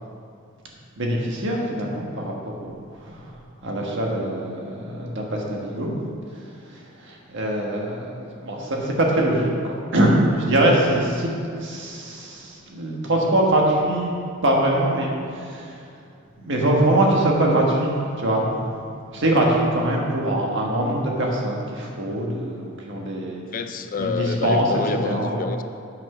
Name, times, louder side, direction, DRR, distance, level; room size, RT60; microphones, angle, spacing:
voice 1, 1.0-6.0 6.3-14.1 14.4-15.8 16.4-18.8 19.1-23.4 24.0-24.7 25.0-25.5, right 1 dB, 60° right, -1 dB, 1.6 m, -23 dB
voice 2, 23.4-25.6, left 4 dB, 40° left, 9 dB, 0.4 m, -28 dB
8.8 x 6.1 x 5.7 m, 2.4 s
head